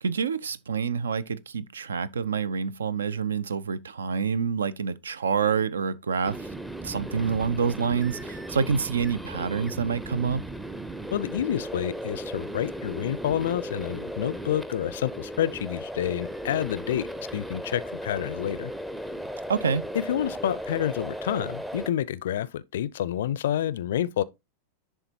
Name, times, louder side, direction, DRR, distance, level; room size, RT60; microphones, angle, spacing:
voice 1, 0.0-6.5 6.8-10.4 19.5-19.8, right 6 dB, 70° right, 0.4 m, -27 dB
sound 1, 6.2-21.9, right 1 dB, 5° right, 0.5 m, -36 dB
voice 2, 11.1-18.7 20.1-24.2, left 11 dB, 60° left, 0.4 m, -29 dB
10.5 x 3.6 x 2.8 m
figure-of-eight pair, 90°, 0 cm